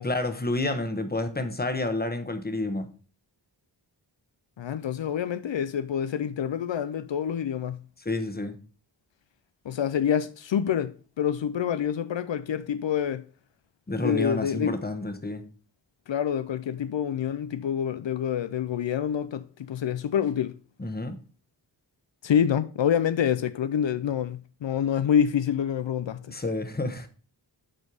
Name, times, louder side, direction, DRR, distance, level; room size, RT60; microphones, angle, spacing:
voice 1, 0.0-2.9 8.0-8.6 13.9-15.5 20.8-21.2 26.3-27.1, left 2 dB, 20° left, 1.0 m, -29 dB
voice 2, 4.6-7.8 9.7-13.2 14.0-14.8 16.1-20.6 22.2-26.3, left 8 dB, 80° left, 0.5 m, -27 dB
7.6 x 4.4 x 4.8 m
wide cardioid pair, 55°, 44 cm